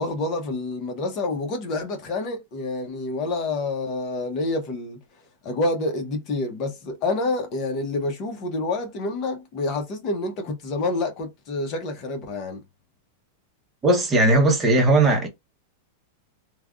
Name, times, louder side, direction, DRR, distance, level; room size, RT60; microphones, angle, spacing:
voice 1, 0.0-5.0 5.4-12.6, left 2 dB, 35° left, 1.0 m, -28 dB
voice 2, 13.8-15.3, right 2 dB, 15° right, 0.9 m, -18 dB
3.2 x 2.4 x 2.4 m
supercardioid pair, 150°, 0 cm